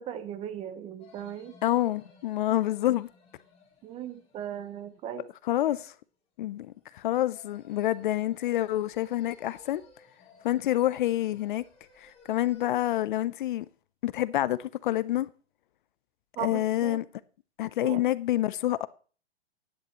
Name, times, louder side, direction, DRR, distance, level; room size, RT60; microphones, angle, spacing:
voice 1, 0.0-1.6 3.8-5.3 16.4-17.0 17.8-18.0, right 10 dB, 20° right, 0.7 m, -37 dB
sound 1, 1.0-5.4 6.7-12.7, left 5 dB, 15° left, 4.3 m, -58 dB
voice 2, 1.6-3.1 5.5-5.9 6.4-9.8 10.4-11.6 12.0-13.7 14.0-15.3 16.4-17.0 17.6-18.9, left 14 dB, 50° left, 0.5 m, -27 dB
13.5 x 10.5 x 3.0 m
hypercardioid pair, 140°, 34 cm